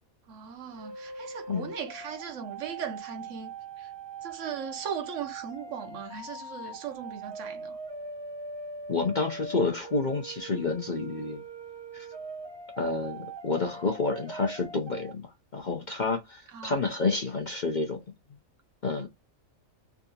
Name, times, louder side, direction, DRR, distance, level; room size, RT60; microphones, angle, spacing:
voice 1, 0.3-3.9 4.2-7.8 16.5-16.8, right 7 dB, 65° right, 1.1 m, -38 dB
sound 1, 0.7-15.1, right 3 dB, 30° right, 0.5 m, -42 dB
voice 2, 8.9-11.4 11.9-12.1 12.8-18.0 18.8-19.1, left 3 dB, 45° left, 0.6 m, -29 dB
3.6 x 2.4 x 2.7 m
omnidirectional pair, 1.4 m